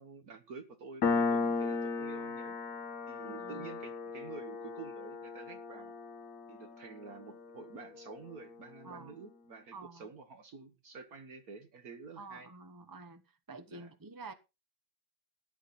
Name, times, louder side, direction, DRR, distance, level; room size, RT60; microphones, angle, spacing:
voice 1, 0.0-2.6 3.1-6.0 6.5-12.5 13.7-13.9, right 5 dB, 55° right, 1.5 m, -49 dB
Piano, 1.0-8.2, left 4 dB, 50° left, 1.3 m, -36 dB
voice 2, 3.2-3.7 8.8-9.1 9.7-10.1 12.2-13.2 13.5-14.3, right 3 dB, 25° right, 0.4 m, -49 dB
13.0 x 10.0 x 4.1 m
omnidirectional pair, 2.1 m